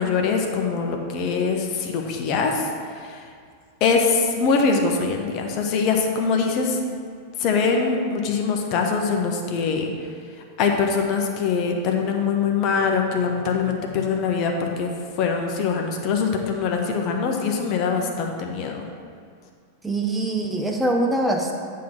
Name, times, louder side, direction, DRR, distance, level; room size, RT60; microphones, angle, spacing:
voice 1, 0.0-2.6 3.0-3.2 3.8-6.8 7.4-9.9 10.6-14.9 15.2-18.8, left 5 dB, 40° left, 2 dB, 0.8 m, -23 dB
voice 2, 19.8-21.5, right 1 dB, 5° right, 1 dB, 0.6 m, -23 dB
8.6 x 3.7 x 5.9 m, 2.1 s
figure-of-eight pair, 90°, 0 cm